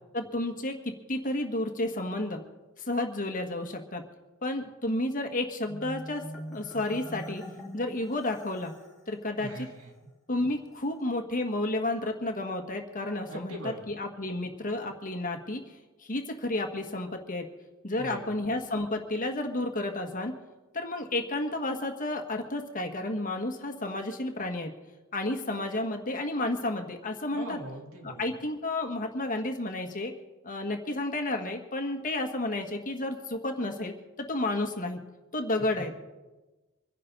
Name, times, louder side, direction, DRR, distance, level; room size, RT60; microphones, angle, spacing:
voice 1, 0.1-2.4 2.9-4.0 4.4-6.2 6.5-7.4 7.7-8.7 9.1-9.7 10.3-15.6 16.0-17.5 17.8-20.3 20.7-24.7 25.1-27.6 28.0-30.1 30.4-35.0 35.3-35.9, left 2 dB, 40° left, 4 dB, 1.6 m, -31 dB
Marimba xylophone, 5.7-9.0, equal, ahead, 3.1 m, -43 dB
voice 2, 13.3-13.9 17.9-18.3 27.3-28.3 35.8-35.9, right 1 dB, 75° right, 0 dB, 3.3 m, -40 dB
25.5 x 11.0 x 4.0 m, 1.1 s
head